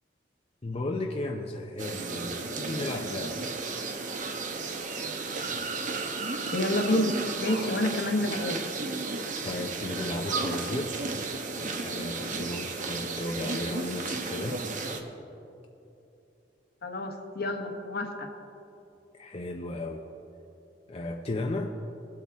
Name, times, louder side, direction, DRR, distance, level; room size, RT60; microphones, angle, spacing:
voice 1, 0.6-3.6 9.4-14.6 19.1-20.0 20.9-21.7, left 2 dB, 35° left, 1 dB, 0.6 m, -35 dB
sound 1, 1.8-15.0, right 3 dB, 45° right, 0.9 m, -34 dB
voice 2, 6.5-8.6 16.8-18.3, left 1 dB, 60° left, 4 dB, 1.2 m, -28 dB
20.0 x 8.2 x 3.5 m, 2.8 s
head